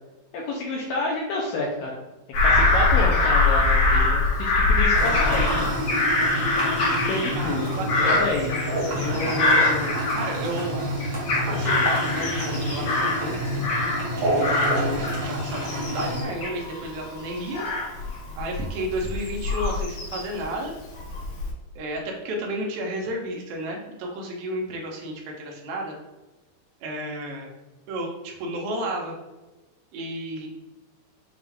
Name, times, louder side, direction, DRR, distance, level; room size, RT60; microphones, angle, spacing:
voice 1, 0.3-2.0 2.4-5.6 6.5-7.7 8.0-9.5, left 2 dB, 80° left, -1 dB, 1.9 m, -29 dB
Bird vocalization bird call bird song / Crow, 2.3-10.7 11.0-14.1 14.4-20.4 20.9-21.5, left 2 dB, 65° left, 1.9 m, -24 dB
sound 1, 4.9-16.2, equal, 60° right, 1.2 m, -28 dB
voice 2, 7.4-8.3 8.9-10.8 11.5-11.8 12.1-13.6 14.4-17.6 18.3-20.7 21.8-26.0 26.8-27.5 27.9-29.2 29.9-30.5, right 1 dB, 80° right, 0 dB, 1.7 m, -32 dB
6.4 x 2.4 x 3.4 m, 1.1 s
omnidirectional pair, 4.5 m